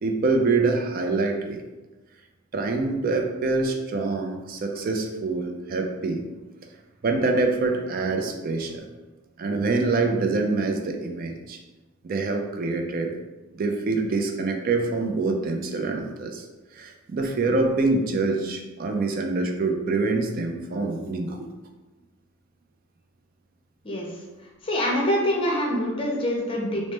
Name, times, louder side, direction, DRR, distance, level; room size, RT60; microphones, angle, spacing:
voice 1, 0.0-1.6 2.5-6.2 7.0-8.9 9.4-11.6 12.0-13.1 13.5-16.5 16.7-21.5, right 3 dB, 45° right, 4 dB, 0.3 m, -25 dB
voice 2, 24.6-26.9, equal, 25° left, -2 dB, 0.6 m, -25 dB
3.1 x 2.0 x 3.1 m, 1.1 s
head